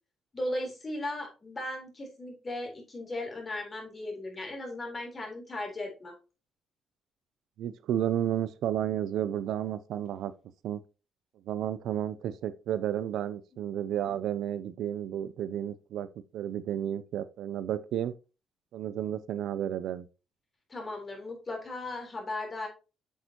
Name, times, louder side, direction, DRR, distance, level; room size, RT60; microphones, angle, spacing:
voice 1, 0.3-6.1 20.7-22.7, left 1 dB, 30° left, 3.9 m, -37 dB
voice 2, 7.6-10.3 10.6-10.8 11.5-16.1 16.3-18.1 18.7-20.0, right 10 dB, 80° right, 0.5 m, -32 dB
8.1 x 6.6 x 2.9 m
cardioid pair, 90°, 0 cm